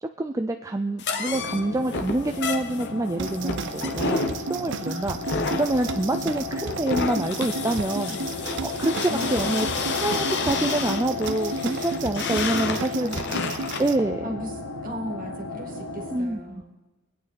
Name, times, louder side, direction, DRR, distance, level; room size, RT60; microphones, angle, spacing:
voice 1, 0.0-4.2 4.5-5.2 5.6-8.2 8.6-9.7 10.0-13.1 13.8-14.3 16.1-16.7, right 2 dB, 15° right, 5 dB, 0.4 m, -26 dB
sound 1, 1.0-13.9, left 4 dB, 55° left, 1.1 m, -30 dB
sound 2, 1.3-16.2, left 3 dB, 75° left, 1.7 m, -35 dB
sound 3, 3.2-14.0, right 4 dB, 60° right, 0.6 m, -34 dB
voice 2, 9.1-9.7 13.0-13.2 13.7-13.8 14.2-16.7, equal, 40° right, 3 dB, 2.1 m, -36 dB
24.0 x 8.9 x 4.2 m, 1.2 s
head